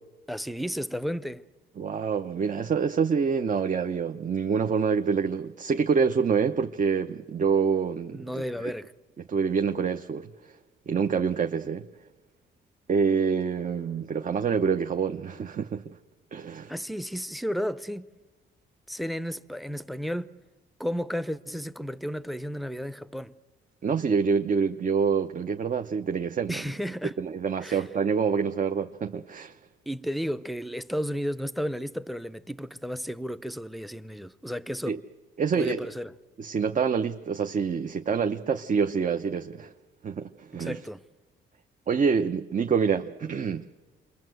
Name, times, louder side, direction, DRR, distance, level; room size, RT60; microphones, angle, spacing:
voice 1, 0.3-1.4 8.1-8.9 16.7-18.1 18.9-20.3 20.8-23.3 26.5-27.2 27.6-27.8 29.9-35.0 35.5-36.1 40.5-41.0, equal, ahead, 0.7 m, -33 dB
voice 2, 1.8-8.2 9.3-10.3 10.9-11.9 12.9-15.8 16.3-16.7 23.8-26.6 27.2-29.5 34.9-35.0 35.4-35.8 36.4-39.7 40.0-40.8 41.9-43.6, right 6 dB, 40° right, 0.8 m, -26 dB
27.5 x 22.0 x 7.9 m
cardioid pair, 90°, 20 cm